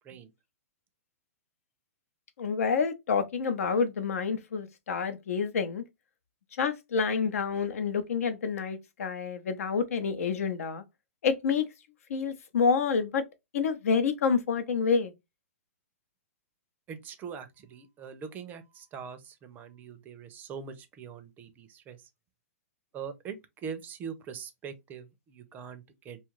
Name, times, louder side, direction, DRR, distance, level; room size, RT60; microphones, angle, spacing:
voice 1, 2.4-5.8 6.6-10.8 11.2-11.6 12.1-13.2 13.5-15.1, left 5 dB, 75° left, 0.7 m, -28 dB
voice 2, 16.9-22.0 22.9-26.2, right 6 dB, 20° right, 0.5 m, -42 dB
2.7 x 2.4 x 3.0 m
hypercardioid pair, 140°, 8 cm